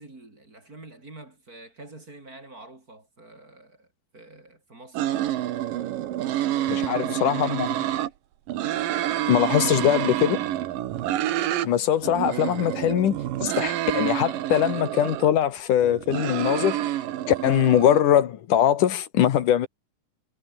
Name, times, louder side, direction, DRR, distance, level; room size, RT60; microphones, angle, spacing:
voice 1, 0.0-3.9 4.1-5.3 6.5-8.1, right 2 dB, 25° right, 4.5 m, -46 dB
sound 1, 4.9-8.1 8.5-11.7 12.0-15.3 15.8-18.0, right 13 dB, 85° right, 3.0 m, -28 dB
voice 2, 6.7-7.7 9.3-10.4 11.6-16.8 17.3-19.7, left 10 dB, 70° left, 2.9 m, -22 dB
omnidirectional pair, 3.8 m